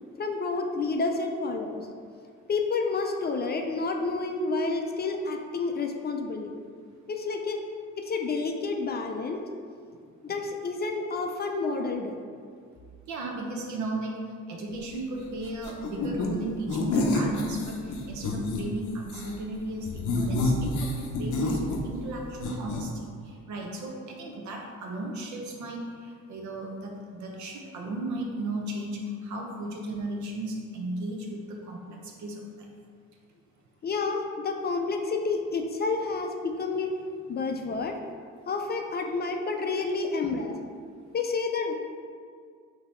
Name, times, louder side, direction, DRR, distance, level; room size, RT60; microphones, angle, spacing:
voice 1, 0.2-1.9 2.5-6.5 7.1-7.6 8.0-9.4 10.2-12.1 33.8-36.9 37.3-38.0 38.5-40.6 41.1-41.7, left 4 dB, 35° left, 4 dB, 0.4 m, -29 dB
voice 2, 13.1-14.2 14.5-17.8 18.1-23.1 23.5-25.8 26.3-32.7, right 2 dB, 70° right, 0 dB, 0.8 m, -35 dB
sound 1, 15.6-16.3 16.7-18.6 19.0-19.3 19.8-22.1 22.4-22.8, left 2 dB, 85° left, 0.6 m, -28 dB
3.7 x 2.8 x 4.3 m, 2.1 s
cardioid pair, 90°, 30 cm